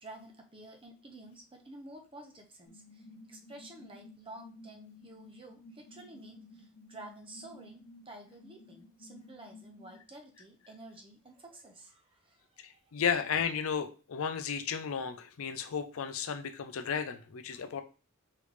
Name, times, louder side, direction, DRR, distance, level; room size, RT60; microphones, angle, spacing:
voice 1, 0.0-3.0 3.3-12.8 17.5-17.6, right 2 dB, 25° right, 2 dB, 0.8 m, -51 dB
sound 1, 2.7-10.0, left 2 dB, 40° left, 0.8 m, -54 dB
voice 2, 12.6-17.8, left 7 dB, 65° left, 9 dB, 0.5 m, -34 dB
3.8 x 3.3 x 3.2 m, 0.34 s
head